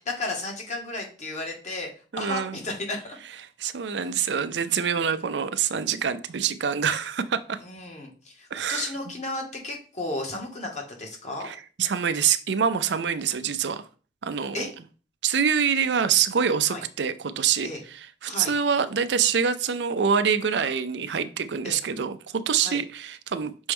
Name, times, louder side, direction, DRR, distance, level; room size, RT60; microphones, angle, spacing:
voice 1, 0.2-1.9 2.2-3.2 3.8-4.1 4.9-5.0 7.6-11.5 14.5-14.7 16.7-16.8 17.6-17.8 18.2-18.5 21.6-21.8 22.6-22.8, left 2 dB, 40° left, 1.7 m, -34 dB
voice 2, 2.1-2.6 3.6-7.6 8.5-8.9 11.4-13.8 14.2-14.7 15.2-17.7 17.9-23.7, right 7 dB, 80° right, 0.5 m, -25 dB
6.1 x 4.4 x 3.5 m
head